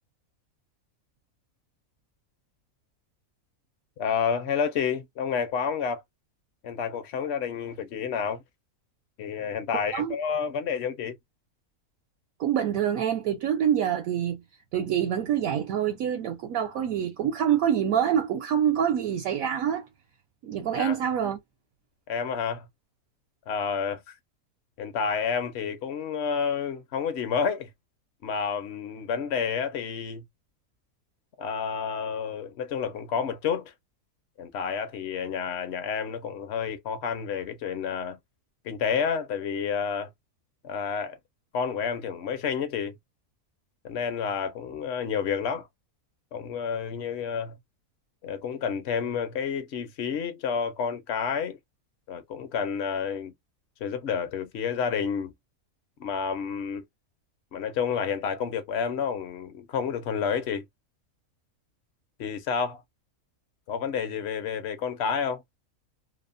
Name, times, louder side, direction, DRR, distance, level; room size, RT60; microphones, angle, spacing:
voice 1, 4.0-6.0 6.6-8.4 9.2-11.1 20.7-21.0 22.1-22.7 23.5-24.2 24.8-27.7 28.2-30.2 31.4-33.7 34.4-38.2 38.6-40.1 40.6-41.2 41.5-42.9 43.8-45.7 46.3-47.5 48.2-51.6 52.1-53.3 53.8-55.3 56.0-56.8 57.5-60.6 62.2-62.8 63.7-65.4, left 6 dB, 65° left, 0.7 m, -30 dB
voice 2, 12.4-14.4 14.7-19.8 20.4-21.4, right 9 dB, 75° right, 1.0 m, -26 dB
2.8 x 2.0 x 2.5 m
omnidirectional pair, 1.5 m